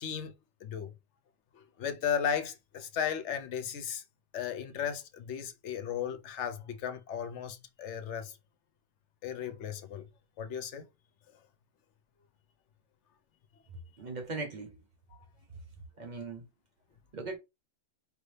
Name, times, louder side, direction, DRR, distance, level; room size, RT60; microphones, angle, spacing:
voice 1, 0.0-0.3 0.6-0.9 1.8-4.0 4.3-8.3 9.2-10.1 10.4-10.8, left 8 dB, 65° left, 1.0 m, -35 dB
voice 2, 14.0-14.8 16.0-16.5 17.1-17.4, right 3 dB, 35° right, 1.0 m, -39 dB
4.8 x 2.7 x 3.3 m
omnidirectional pair, 1.4 m